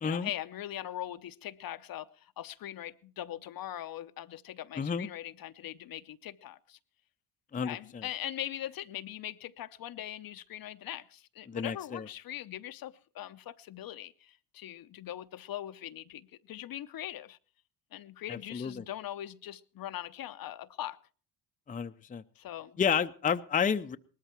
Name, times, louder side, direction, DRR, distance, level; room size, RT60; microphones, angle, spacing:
voice 1, 0.0-6.8 7.5-17.4 17.9-21.0 22.4-22.8, left 12 dB, 50° left, 0.8 m, -41 dB
voice 2, 4.8-5.1 7.5-8.0 11.5-12.1 18.3-18.8 21.7-22.2 22.8-24.0, left 7 dB, 20° left, 0.6 m, -31 dB
19.0 x 13.5 x 4.5 m
supercardioid pair, 75°, 46 cm